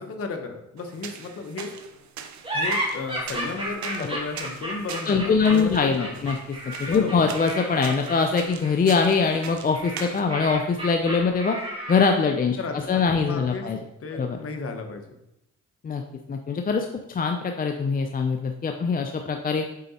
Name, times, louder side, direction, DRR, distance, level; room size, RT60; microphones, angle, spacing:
voice 1, 0.0-1.8 2.5-5.7 6.0-6.1 6.9-7.2 12.6-13.7 14.0-15.1, left 4 dB, 50° left, 5 dB, 1.1 m, -34 dB
sound 1, 0.8-10.2, right 8 dB, 70° right, 0.7 m, -42 dB
sound 2, 2.4-12.3, right 1 dB, 20° right, 2.2 m, -32 dB
voice 2, 5.1-6.4 6.6-11.6 11.9-13.8 14.1-14.4 15.8-16.0 16.3-19.6, left 5 dB, 30° left, 4 dB, 0.5 m, -23 dB
7.6 x 4.0 x 4.2 m, 0.86 s
cardioid pair, 90°, 30 cm